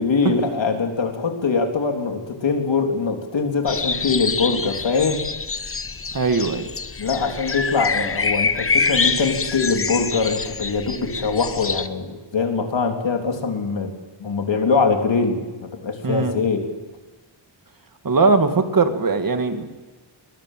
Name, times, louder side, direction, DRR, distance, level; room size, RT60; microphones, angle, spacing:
voice 1, 0.0-5.2 7.0-13.9 14.2-16.6, left 4 dB, 65° left, 4 dB, 3.7 m, -22 dB
sound 1, 3.7-11.9, left 4 dB, 30° left, 0.9 m, -25 dB
voice 2, 6.1-6.7 16.0-16.3 18.0-19.7, right 4 dB, 45° right, 7 dB, 2.2 m, -20 dB
22.0 x 21.5 x 7.6 m, 1.2 s
wide cardioid pair, 155°, 47 cm